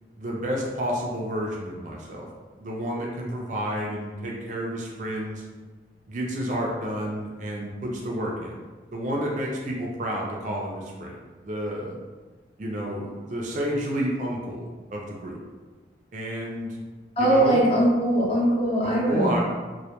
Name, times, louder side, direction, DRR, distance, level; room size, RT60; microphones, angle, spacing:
voice 1, 0.2-2.3 2.6-5.4 6.1-8.5 8.9-11.1 11.4-12.0 12.6-15.4 16.1-16.8 17.2-17.7 18.8-19.4, equal, 45° right, -2 dB, 0.3 m, -30 dB
voice 2, 17.2-19.4, right 1 dB, 35° left, -5 dB, 0.5 m, -21 dB
2.1 x 2.1 x 2.8 m, 1.4 s
head